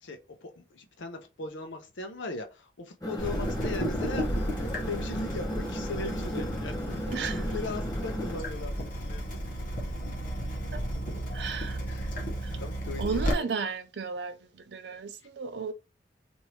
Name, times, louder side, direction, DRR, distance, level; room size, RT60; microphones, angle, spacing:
voice 1, 0.0-9.4 11.9-12.2 12.6-13.5, left 3 dB, 80° left, 0.6 m, -39 dB
sound 1, 3.0-8.4, equal, 20° left, 0.7 m, -36 dB
Water tap faucet / Drip, 3.2-13.3, equal, 45° left, 0.9 m, -33 dB
voice 2, 7.1-7.5 10.7-10.8 11.3-11.8 12.4-12.6 13.0-15.7, right 5 dB, 65° right, 0.5 m, -34 dB
2.9 x 2.6 x 3.2 m
head